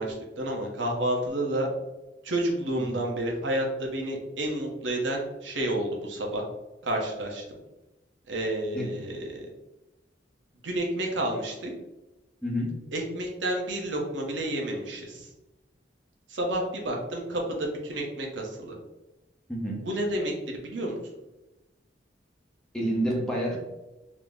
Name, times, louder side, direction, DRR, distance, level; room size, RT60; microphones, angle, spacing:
voice 1, 0.0-1.7 2.2-3.6 3.9-6.4 6.8-7.6 8.3-9.4 10.6-11.7 12.9-15.3 16.3-18.7 19.8-20.3 20.6-21.0, right 1 dB, 85° right, 0 dB, 0.8 m, -30 dB
voice 2, 12.4-12.8 19.5-19.8 22.7-23.6, equal, 5° left, -3 dB, 0.7 m, -29 dB
3.6 x 2.1 x 3.5 m, 1.0 s
head